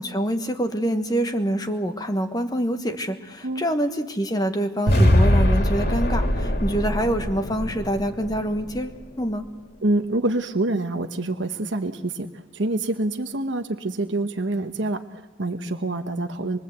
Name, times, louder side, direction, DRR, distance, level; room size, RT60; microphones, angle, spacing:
voice 1, 0.0-9.4, equal, 20° left, 7 dB, 1.3 m, -26 dB
sound 1, 4.9-9.0, equal, 50° left, 2.9 m, -22 dB
voice 2, 9.8-16.6, right 2 dB, 70° right, 6 dB, 1.1 m, -26 dB
25.5 x 23.0 x 8.1 m, 1.1 s
head